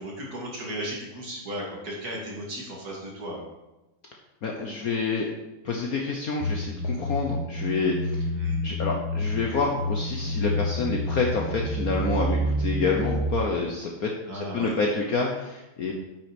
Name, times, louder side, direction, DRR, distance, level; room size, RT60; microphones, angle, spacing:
voice 1, 0.0-3.5 8.3-8.7 14.3-14.7, right 1 dB, 45° right, -3 dB, 2.6 m, -35 dB
voice 2, 4.4-5.3 5.6-8.3 8.6-15.9, left 4 dB, 55° left, 0 dB, 1.1 m, -28 dB
sound 1, 6.4-13.3, left 1 dB, 85° left, 2.0 m, -28 dB
8.3 x 6.0 x 5.1 m, 0.99 s
omnidirectional pair, 2.3 m